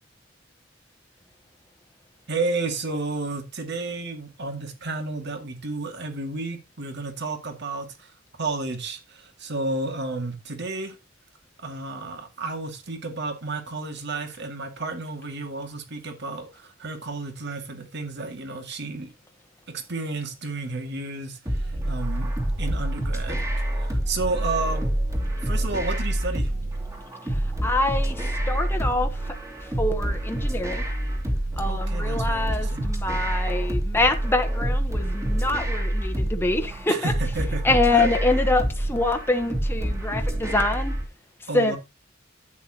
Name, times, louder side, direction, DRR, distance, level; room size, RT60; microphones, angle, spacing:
voice 1, 2.3-8.1 8.4-11.0 11.6-19.1 19.7-22.3 22.6-23.4 23.8-24.9 25.4-26.5 31.6-32.9 36.9-38.1 41.5-41.8, right 3 dB, 60° right, 2.2 m, -31 dB
sound 1, 21.5-41.1, right 1 dB, 15° right, 2.2 m, -27 dB
voice 2, 27.6-29.1 29.8-30.8 31.6-37.1 37.6-40.9 41.5-41.8, left 2 dB, 10° left, 1.0 m, -25 dB
11.0 x 9.0 x 2.9 m
head